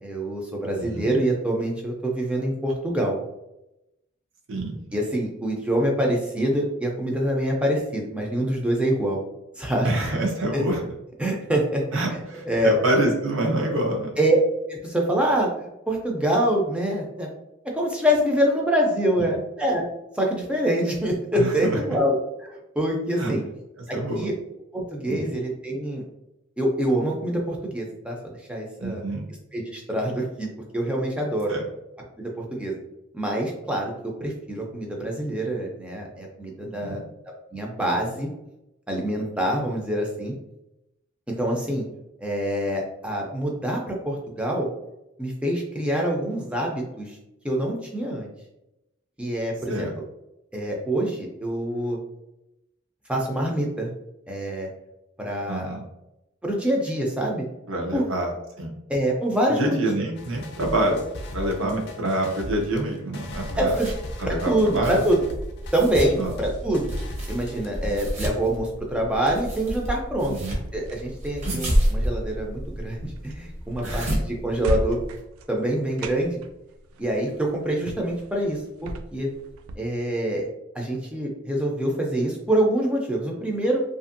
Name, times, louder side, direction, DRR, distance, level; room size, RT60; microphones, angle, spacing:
voice 1, 0.0-3.2 4.9-9.2 9.6-9.9 10.5-10.6 11.2-11.8 12.5-12.8 14.2-14.4 14.7-15.5 15.9-17.3 17.7-19.9 20.1-23.4 23.9-24.4 24.7-26.0 26.6-28.2 28.5-29.0 29.5-30.5 30.7-31.5 32.2-32.8 33.1-37.0 37.5-38.3 38.9-40.3 41.3-41.8 42.2-44.7 45.2-47.2 47.4-48.3 49.2-49.9 50.5-52.0 53.1-53.9 54.3-54.7 55.2-55.7 56.4-57.5 57.9-58.0 58.9-59.8 63.6-63.9 64.2-65.2 65.7-66.9 67.3-70.3 70.7-74.1 74.4-75.0 75.5-76.4 77.0-79.3 79.8-80.5 80.8-83.8, right 1 dB, 5° right, -1 dB, 0.4 m, -25 dB
voice 2, 0.8-1.1 4.5-4.7 9.8-10.8 11.9-14.1 19.2-19.4 21.4-21.7 23.2-23.3 23.9-24.3 25.1-25.3 28.8-29.2 31.5-31.7 36.6-37.0 49.7-49.9 55.5-55.8 57.7-58.3 58.6-58.7 59.5-61.0 61.3-63.8 64.2-65.0 66.2-66.3 70.3-70.6 71.4-71.6 73.8-74.2, right 1 dB, 70° right, 1 dB, 0.7 m, -26 dB
sound 1, 60.2-68.5, equal, 55° left, 0.4 m, -38 dB
sound 2, 63.3-75.2, equal, 35° right, 0.7 m, -30 dB
sound 3, 69.8-79.8, right 1 dB, 90° right, 0.3 m, -37 dB
2.8 x 2.5 x 2.5 m, 0.90 s
head